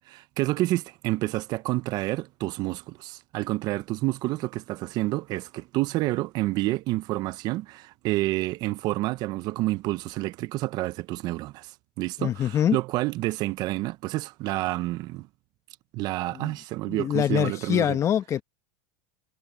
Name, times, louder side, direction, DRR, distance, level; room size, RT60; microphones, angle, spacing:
voice 1, 0.1-15.3 15.9-18.0, right 18 dB, 50° right, 0.9 m, -29 dB
voice 2, 12.2-12.8 16.3-16.5 16.8-18.4, left 10 dB, 35° left, 1.5 m, -24 dB
hypercardioid pair, 105°, 9 cm